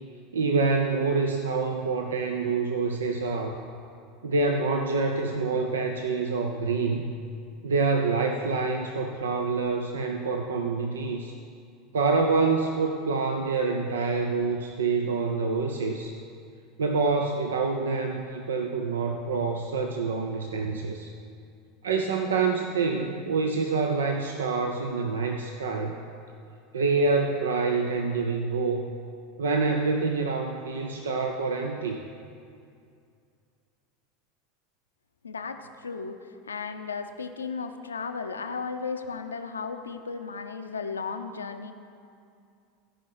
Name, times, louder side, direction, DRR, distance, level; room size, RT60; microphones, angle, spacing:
voice 1, 0.3-3.6 4.2-7.1 7.6-11.3 11.9-16.2 16.8-21.1 21.8-26.0 26.7-28.9 29.4-32.0, right 4 dB, 80° right, 4 dB, 0.6 m, -26 dB
voice 2, 35.2-41.7, left 5 dB, 85° left, 7 dB, 0.6 m, -35 dB
16.0 x 5.4 x 6.0 m, 2.4 s
figure-of-eight pair, 80°, 0 cm